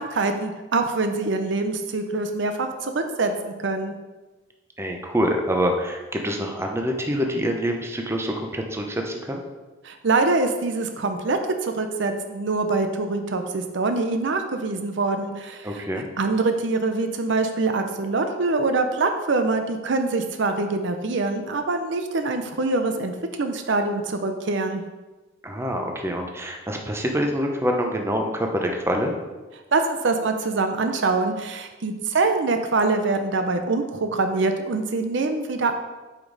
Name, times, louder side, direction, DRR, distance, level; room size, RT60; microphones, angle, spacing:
voice 1, 0.0-3.9 9.8-15.8 16.2-24.8 29.7-35.7, right 3 dB, 65° right, 6 dB, 0.6 m, -24 dB
voice 2, 4.8-9.4 15.6-16.1 25.4-29.1, equal, 15° right, 2 dB, 0.8 m, -26 dB
8.3 x 5.1 x 4.0 m, 1.2 s
head